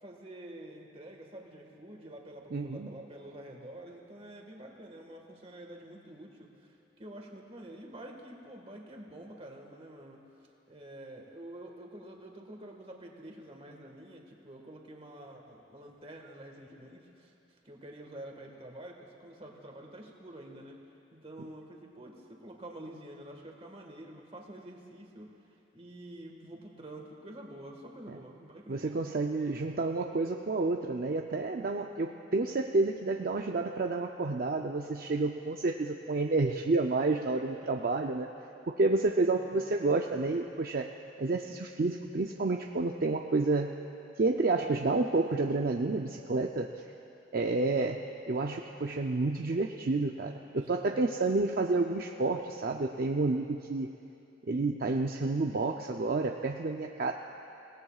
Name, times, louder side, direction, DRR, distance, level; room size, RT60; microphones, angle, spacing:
voice 1, 0.0-10.2 10.7-17.3 17.6-20.8 21.1-25.3 25.7-29.1 39.3-39.5 50.7-51.1, right 1 dB, 30° right, 1 dB, 1.7 m, -48 dB
voice 2, 2.5-2.9 28.1-28.2 28.7-38.3 38.8-40.9 41.2-43.7 44.2-46.7 47.3-48.0 48.3-53.9 54.5-57.1, right 3 dB, 50° right, 3 dB, 0.5 m, -30 dB
29.0 x 18.0 x 2.4 m, 2.8 s
head